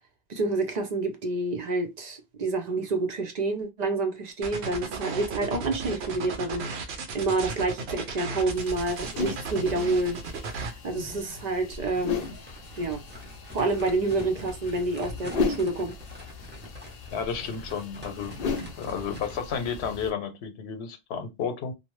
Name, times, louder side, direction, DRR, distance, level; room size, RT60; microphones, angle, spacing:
voice 1, 0.3-10.2 10.8-12.2 12.8-13.0 13.5-15.9, right 2 dB, 50° right, 0.6 m, -28 dB
sound 1, 4.4-10.7, right 4 dB, 80° right, 0.9 m, -35 dB
sound 2, 8.5-20.1, left 5 dB, 65° left, 0.8 m, -36 dB
sound 3, 11.9-19.6, left 1 dB, 10° right, 0.6 m, -45 dB
voice 2, 17.1-18.4 18.8-21.7, left 6 dB, 85° left, 0.9 m, -32 dB
2.6 x 2.1 x 3.0 m
omnidirectional pair, 1.1 m